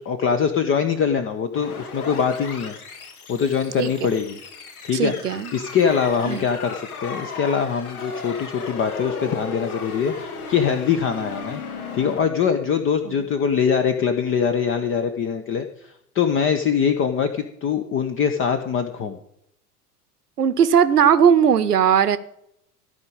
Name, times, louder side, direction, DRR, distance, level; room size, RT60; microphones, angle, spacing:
voice 1, 0.0-2.8 3.3-4.4 4.8-5.1 5.5-11.6 11.9-19.2, left 7 dB, 25° left, 8 dB, 0.9 m, -23 dB
sound 1, 1.5-12.2, left 4 dB, 65° left, 1.8 m, -35 dB
voice 2, 3.8-4.2 4.9-5.5 6.3-6.5 13.0-13.2 20.4-22.2, right 8 dB, 75° right, 13 dB, 0.9 m, -18 dB
14.5 x 5.1 x 8.7 m, 0.76 s
figure-of-eight pair, 75°, 47 cm